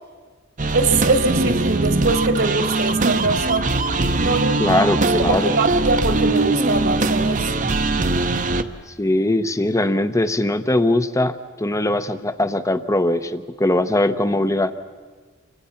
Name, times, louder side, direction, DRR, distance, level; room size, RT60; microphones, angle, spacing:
sound 1, 0.6-8.6, right 2 dB, 40° right, 0.9 m, -21 dB
voice 1, 0.7-3.7 4.2-4.8 5.2-7.5, right 3 dB, 55° right, 8 dB, 1.5 m, -22 dB
voice 2, 4.6-5.5 9.0-14.7, left 1 dB, 15° left, 11 dB, 0.9 m, -20 dB
29.5 x 25.0 x 5.9 m, 1.5 s
head